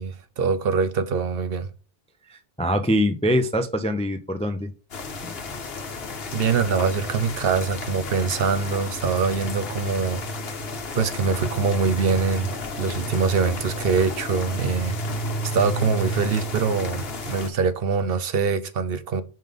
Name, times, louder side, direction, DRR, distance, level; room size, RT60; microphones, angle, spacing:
voice 1, 0.0-1.7 6.3-10.2 10.9-15.2 15.5-19.2, right 5 dB, 65° right, 0.8 m, -24 dB
voice 2, 2.3-4.7 5.2-5.3, equal, 10° left, 0.3 m, -24 dB
sound 1, 4.9-17.5, left 1 dB, 65° left, 1.2 m, -32 dB
5.4 x 3.7 x 5.1 m
omnidirectional pair, 1.1 m